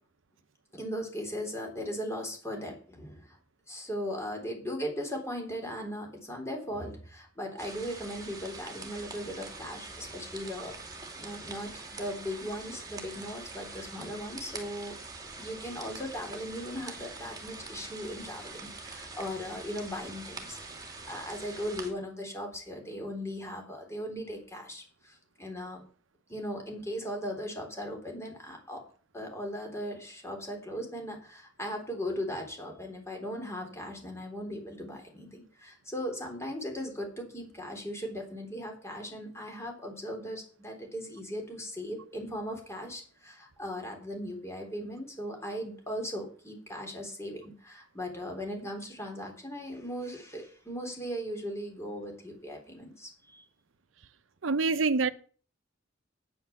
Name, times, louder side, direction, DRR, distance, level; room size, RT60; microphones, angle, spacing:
voice 1, 0.7-3.4 3.7-10.8 11.2-15.0 15.4-25.8 26.3-28.8 29.1-53.5, equal, 15° left, 3.7 m, -38 dB
sound 1, 7.6-21.9, right 3 dB, 20° right, 2.6 m, -44 dB
voice 2, 54.4-55.1, right 4 dB, 80° right, 0.8 m, -25 dB
9.6 x 9.5 x 7.1 m
head